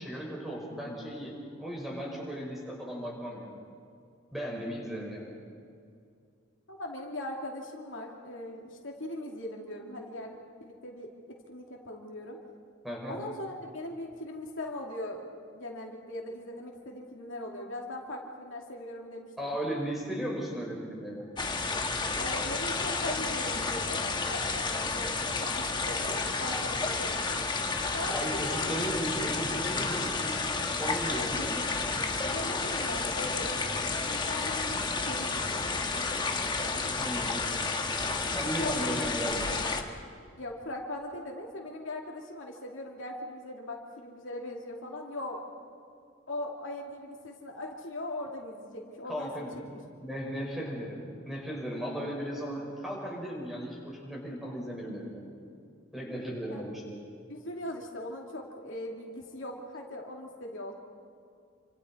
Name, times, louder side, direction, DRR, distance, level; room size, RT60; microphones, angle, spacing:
voice 1, 0.0-1.3 1.6-3.6 4.3-5.4 12.8-13.2 19.4-21.3 28.1-30.4 30.6-31.7 37.0-37.5 38.3-39.4 49.1-49.7 50.0-51.0 51.2-55.3 55.9-57.0, equal, ahead, -3 dB, 5.6 m, -36 dB
voice 2, 6.7-11.1 11.5-12.4 13.1-15.2 15.5-19.6 22.2-25.1 25.4-27.4 27.9-28.8 31.1-31.5 32.3-33.5 34.0-35.7 36.6-36.9 38.6-39.0 40.4-45.4 46.3-49.3 49.7-49.8 56.5-56.7 57.3-60.7, left 1 dB, 70° left, -1 dB, 2.8 m, -40 dB
sound 1, 21.4-39.8, left 3 dB, 20° left, 1.3 m, -31 dB
28.0 x 26.5 x 4.6 m, 2.4 s
head